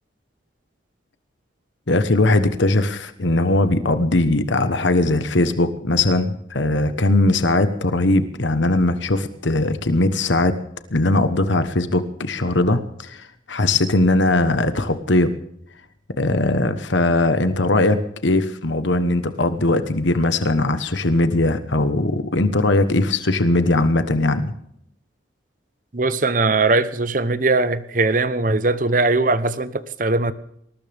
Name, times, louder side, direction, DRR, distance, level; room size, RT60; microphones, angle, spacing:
voice 1, 1.9-10.6 10.9-15.3 16.2-24.5, left 2 dB, 75° left, 1.2 m, -20 dB
voice 2, 25.9-30.3, right 3 dB, 45° right, 0.9 m, -20 dB
20.5 x 19.0 x 3.5 m
head